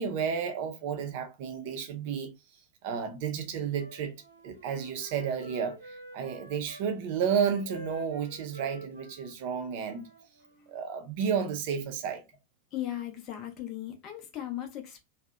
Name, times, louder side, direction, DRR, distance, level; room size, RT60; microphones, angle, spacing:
voice 1, 0.0-2.3 2.8-4.1 4.4-10.1 10.7-12.2, right 7 dB, 50° right, 0.5 m, -32 dB
Wind instrument woodwind instrument, 3.7-6.8 7.3-10.7, right 2 dB, 85° right, 0.8 m, -48 dB
voice 2, 12.7-15.0, left 12 dB, 35° left, 0.5 m, -37 dB
2.6 x 2.1 x 2.2 m
figure-of-eight pair, 90°, 0 cm